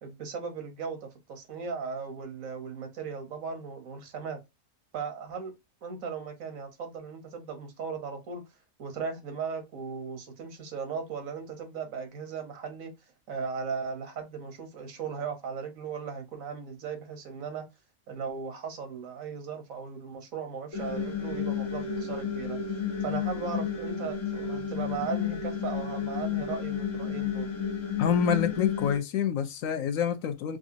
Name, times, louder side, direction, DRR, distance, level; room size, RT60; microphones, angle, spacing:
voice 1, 0.0-4.4 4.9-5.5 5.8-8.4 8.8-12.9 13.3-17.6 18.1-22.6 23.0-27.5, right 5 dB, 85° right, 1.4 m, -37 dB
sound 1, 20.7-29.0, left 7 dB, 70° left, 1.6 m, -32 dB
voice 2, 28.0-30.6, left 8 dB, 90° left, 1.0 m, -27 dB
4.8 x 2.5 x 2.6 m
omnidirectional pair, 1.4 m